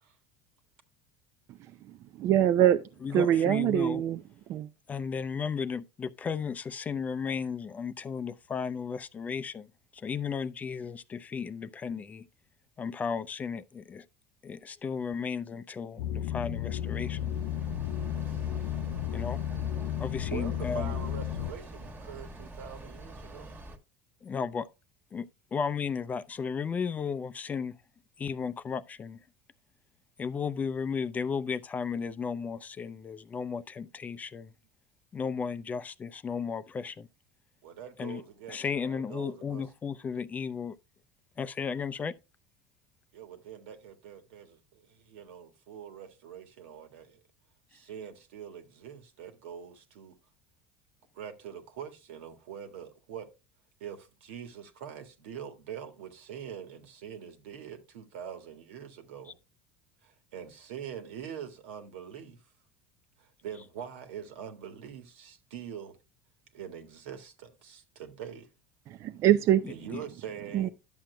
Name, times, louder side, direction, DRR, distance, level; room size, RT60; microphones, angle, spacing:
voice 1, 2.2-2.8 3.1-4.2 4.5-4.7 68.9-69.7 70.5-70.7, right 11 dB, 50° right, 0.5 m, -23 dB
voice 2, 3.0-4.0 4.9-9.7 9.9-12.3 12.8-14.0 14.4-17.3 19.1-19.4 20.0-20.9 24.2-24.7 25.1-27.7 28.2-29.2 30.2-34.5 35.1-37.1 38.0-38.2 38.5-40.8 41.4-42.1 69.6-70.0, left 6 dB, 25° left, 0.5 m, -34 dB
sound 1, 16.0-21.5, left 11 dB, 85° left, 0.5 m, -33 dB
sound 2, 16.2-23.8, right 1 dB, 30° right, 1.5 m, -45 dB
voice 3, 20.3-23.5 37.6-39.6 43.1-47.2 47.7-50.2 51.1-53.3 53.8-59.3 60.0-62.4 63.2-66.0 66.5-68.5 69.7-70.7, right 8 dB, 85° right, 1.7 m, -44 dB
11.5 x 7.4 x 2.2 m
supercardioid pair, 115°, 6 cm